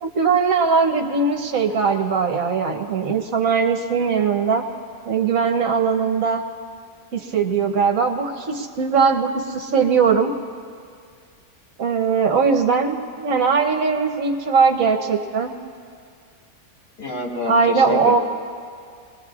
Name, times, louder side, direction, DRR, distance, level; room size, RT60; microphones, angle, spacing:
voice 1, 0.0-4.6 5.1-6.4 7.1-10.3 11.8-15.5 17.5-18.2, right 5 dB, 60° right, 3 dB, 1.3 m, -20 dB
voice 2, 17.0-18.2, left 3 dB, 85° left, -3 dB, 3.0 m, -27 dB
26.0 x 20.5 x 2.5 m, 2.2 s
omnidirectional pair, 1.7 m